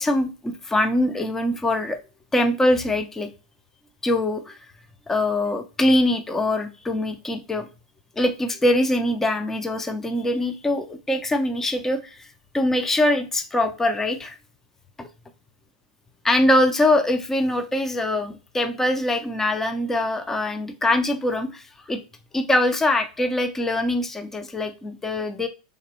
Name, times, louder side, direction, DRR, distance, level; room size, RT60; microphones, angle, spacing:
voice 1, 0.0-2.0 2.3-3.3 4.0-4.6 5.1-7.7 8.2-12.3 12.5-14.4 15.0-15.1 16.2-22.0 22.3-25.5, left 1 dB, 10° left, 0.5 m, -23 dB
3.9 x 2.9 x 3.0 m
hypercardioid pair, 100°, 3 cm